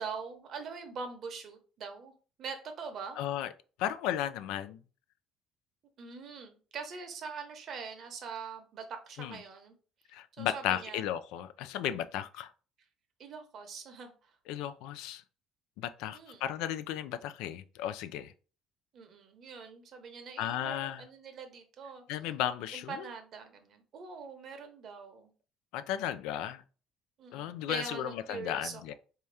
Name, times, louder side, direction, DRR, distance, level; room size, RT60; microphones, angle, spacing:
voice 1, 0.0-2.1 2.4-3.2 6.0-9.7 10.4-11.0 13.2-14.3 16.1-16.4 18.9-22.0 22.7-25.3 27.2-28.9, right 5 dB, 50° right, 0.9 m, -43 dB
voice 2, 3.2-3.5 3.8-4.8 9.2-9.4 10.1-12.5 14.5-15.2 15.8-18.3 20.4-21.0 22.1-23.1 25.7-26.6 27.3-28.9, left 11 dB, 85° left, 0.3 m, -35 dB
3.5 x 2.8 x 3.3 m
cardioid pair, 115°, 0 cm